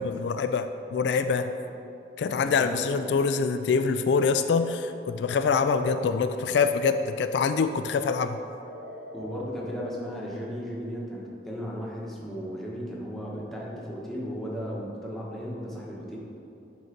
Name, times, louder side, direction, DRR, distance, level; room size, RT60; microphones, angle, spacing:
voice 1, 0.0-1.5 2.2-8.4, left 5 dB, 75° left, 9 dB, 0.3 m, -25 dB
voice 2, 2.2-3.0 9.1-16.2, equal, ahead, -5 dB, 1.3 m, -35 dB
sound 1, 5.2-7.3 8.6-10.7, left 1 dB, 65° right, 1.1 m, -45 dB
10.5 x 4.0 x 5.1 m, 2.7 s
head